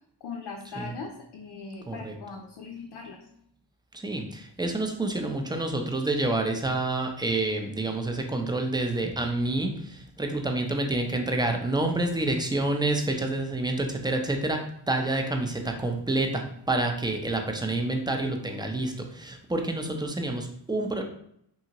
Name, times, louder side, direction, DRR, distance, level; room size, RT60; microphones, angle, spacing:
voice 1, 0.2-3.2, left 5 dB, 70° left, 1 dB, 0.6 m, -40 dB
voice 2, 4.0-14.6 14.9-21.0, right 2 dB, 10° right, 4 dB, 0.5 m, -28 dB
2.7 x 2.6 x 2.8 m, 0.70 s
cardioid pair, 50°, 42 cm